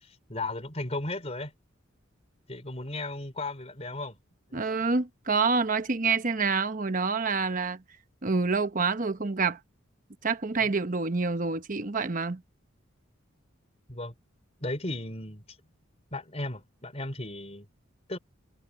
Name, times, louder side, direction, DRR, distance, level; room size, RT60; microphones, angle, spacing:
voice 1, 0.0-1.5 2.5-4.2 4.5-4.6 10.6-10.7 13.9-14.1 14.6-15.4 16.1-17.7 18.1-18.2, left 2 dB, 30° left, 3.8 m, -35 dB
voice 2, 4.5-7.8 8.2-9.6 10.2-12.4, right 4 dB, 40° right, 1.0 m, -27 dB
head